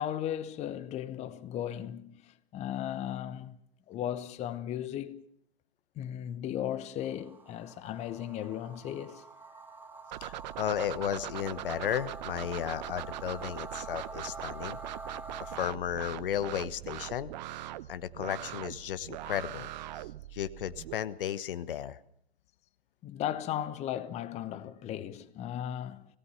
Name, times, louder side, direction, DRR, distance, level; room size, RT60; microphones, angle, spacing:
voice 1, 0.0-3.6 3.9-5.2 6.0-9.2 23.0-26.1, left 11 dB, 20° left, 1.0 m, -36 dB
sound 1, 7.0-15.7, right 3 dB, 5° right, 1.9 m, -46 dB
sound 2, 10.1-20.9, right 14 dB, 45° right, 0.9 m, -41 dB
voice 2, 10.2-14.8 15.4-17.3 17.9-20.1 20.3-22.0, left 10 dB, 60° left, 1.2 m, -34 dB
26.0 x 18.0 x 5.7 m
figure-of-eight pair, 115°, 31 cm